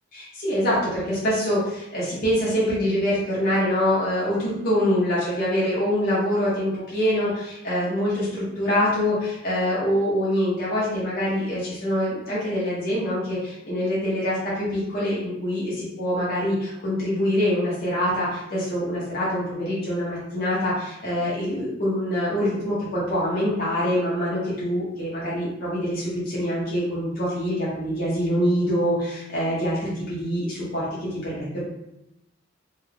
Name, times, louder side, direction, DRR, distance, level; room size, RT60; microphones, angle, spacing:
voice 1, 0.1-31.6, equal, 50° left, -8 dB, 0.7 m, -25 dB
2.4 x 2.3 x 3.2 m, 0.86 s
head